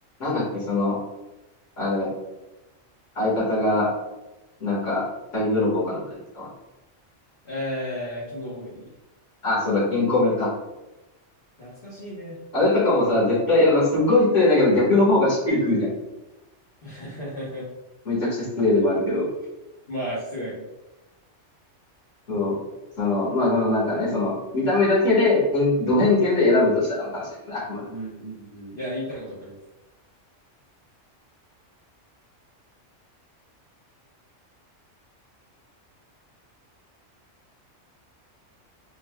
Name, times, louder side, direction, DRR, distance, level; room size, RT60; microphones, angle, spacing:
voice 1, 0.2-1.0 1.8-2.1 3.2-3.9 4.6-5.0 5.3-6.0 6.3-6.5 9.4-10.5 12.5-15.9 18.1-19.3 22.3-22.6 23.0-27.9, left 2 dB, 80° left, -6 dB, 2.1 m, -21 dB
voice 2, 7.4-8.8 11.6-12.4 16.8-17.6 19.9-20.6 27.9-29.6, equal, 50° left, -8 dB, 1.1 m, -33 dB
4.3 x 3.9 x 2.2 m, 1.0 s
omnidirectional pair, 1.3 m